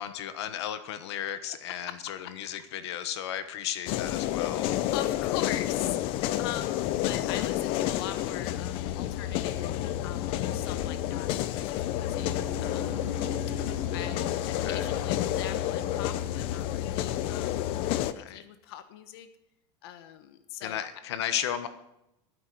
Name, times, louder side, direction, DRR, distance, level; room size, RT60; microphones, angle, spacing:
voice 1, 0.0-4.8 14.6-14.9 18.1-18.4 20.6-21.7, left 10 dB, 90° left, 11 dB, 1.3 m, -34 dB
voice 2, 1.7-2.3 4.4-4.5 4.9-13.6 13.9-19.3 19.8-20.9, left 11 dB, 65° left, 10 dB, 1.2 m, -41 dB
sound 1, 3.9-18.1, left 13 dB, 40° left, 0.7 m, -30 dB
Wind instrument woodwind instrument, 12.1-16.5, right 3 dB, 20° right, 2.7 m, -45 dB
12.5 x 10.0 x 8.0 m, 0.85 s
supercardioid pair, 170°, 14 cm